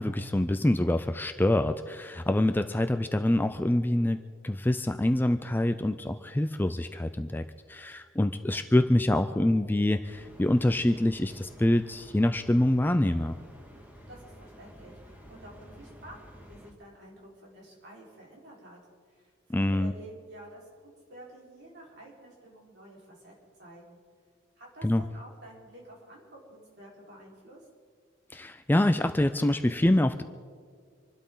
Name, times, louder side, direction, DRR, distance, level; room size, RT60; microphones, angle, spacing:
voice 1, 0.0-7.4 7.7-13.4 19.5-19.9 24.8-25.0 28.3-30.2, left 1 dB, 10° left, 8 dB, 0.4 m, -25 dB
sound 1, 10.0-16.7, equal, 10° right, 1.8 m, -50 dB
voice 2, 14.1-18.8 19.1-24.0 24.6-27.7, right 1 dB, 55° right, -4 dB, 4.7 m, -50 dB
26.5 x 12.5 x 3.9 m, 2.1 s
head